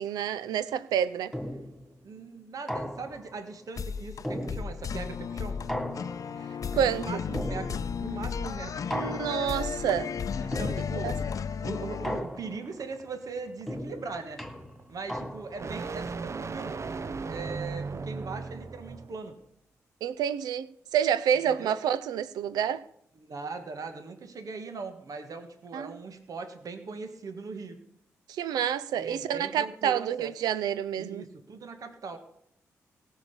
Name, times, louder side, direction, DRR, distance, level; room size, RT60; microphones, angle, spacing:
voice 1, 0.0-1.3 6.7-7.0 8.9-10.1 11.0-11.1 20.0-22.8 25.7-26.0 28.3-31.2, right 9 dB, 80° right, 0.6 m, -28 dB
sound 1, 1.3-1.9 2.7-3.4 4.2-5.0 5.7-6.5 7.3-8.1 8.9-9.6 10.5-11.2 12.0-12.8 13.7-15.7, equal, ahead, 3.0 m, -36 dB
voice 2, 2.0-5.6 6.8-9.2 10.4-11.2 11.6-14.4 14.9-16.8 17.3-19.4 21.4-21.8 23.2-27.8 28.9-30.3 31.0-32.2, right 4 dB, 60° right, 1.6 m, -40 dB
sound 2, 3.8-12.2, left 6 dB, 60° left, 0.6 m, -34 dB
sound 3, 5.6-19.2, right 4 dB, 45° right, 0.7 m, -40 dB
17.0 x 6.4 x 7.0 m
hypercardioid pair, 40°, 7 cm